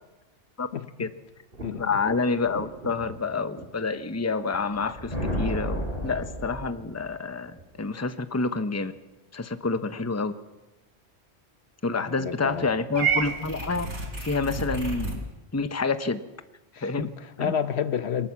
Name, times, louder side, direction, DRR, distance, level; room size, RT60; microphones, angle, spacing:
voice 1, 0.7-1.1 1.6-2.0 12.0-12.8 16.7-18.3, left 7 dB, 70° left, 1.2 m, -31 dB
Thunder, 1.5-9.2 12.8-12.9 13.4-14.3, right 1 dB, 50° right, 3.0 m, -47 dB
voice 2, 1.7-8.9 9.3-10.3 11.8-13.9 14.2-15.2 15.5-16.2 16.8-17.1 17.4-17.5, left 4 dB, 15° left, 0.9 m, -28 dB
sound 1, 4.7-7.2, equal, 35° left, 6.3 m, -32 dB
Purr / Meow, 12.9-15.2, right 5 dB, 85° right, 4.1 m, -29 dB
24.0 x 19.5 x 7.3 m
omnidirectional pair, 1.2 m